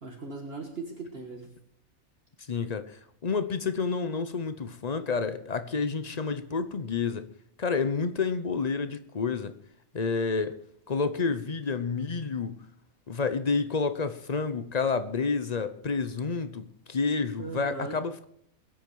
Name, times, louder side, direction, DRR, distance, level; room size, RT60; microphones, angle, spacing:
voice 1, 0.0-1.5 17.4-18.0, right 3 dB, 45° right, 1.8 m, -38 dB
voice 2, 2.5-7.3 7.6-9.6 9.9-10.6 10.9-12.6 13.1-18.3, left 4 dB, 35° left, 0.7 m, -29 dB
22.0 x 8.8 x 4.7 m
omnidirectional pair, 1.5 m